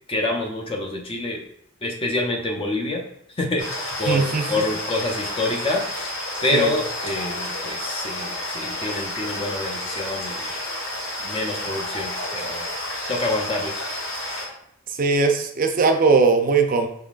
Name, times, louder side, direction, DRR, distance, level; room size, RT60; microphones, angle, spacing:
voice 1, 0.1-1.4 1.8-3.0 3.4-5.9 6.4-10.5 11.2-12.7 13.1-13.8, left 2 dB, 25° left, 1 dB, 0.6 m, -27 dB
sound 1, 3.6-14.5, left 1 dB, 70° left, 1.5 m, -30 dB
voice 2, 4.1-4.6 6.5-6.7 15.0-16.9, right 4 dB, 40° right, 5 dB, 0.5 m, -19 dB
5.8 x 3.8 x 2.4 m, 0.73 s
head